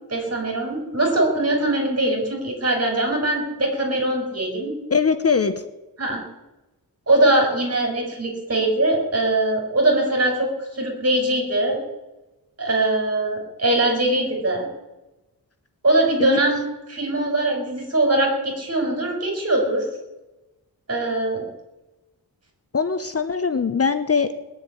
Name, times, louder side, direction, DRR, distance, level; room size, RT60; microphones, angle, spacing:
voice 1, 0.1-4.7 6.0-6.2 7.1-11.8 12.6-14.7 15.8-16.6 16.9-19.9 20.9-21.4, right 1 dB, 40° right, 1 dB, 4.8 m, -21 dB
voice 2, 4.9-5.5 16.2-16.4 22.7-24.4, left 5 dB, 40° left, 10 dB, 0.8 m, -21 dB
20.0 x 7.4 x 9.7 m, 1.0 s
wide cardioid pair, 160°, 38 cm